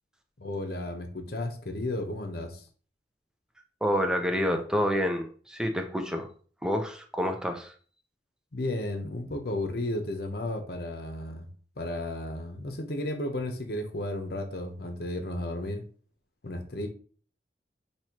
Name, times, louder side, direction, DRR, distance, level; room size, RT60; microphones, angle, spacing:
voice 1, 0.4-2.7 8.5-11.5 11.8-15.8 16.4-16.9, left 1 dB, 60° left, 6 dB, 0.8 m, -33 dB
voice 2, 3.8-6.3 6.6-7.7, equal, 5° right, 4 dB, 0.6 m, -28 dB
6.2 x 3.0 x 2.9 m, 0.43 s
head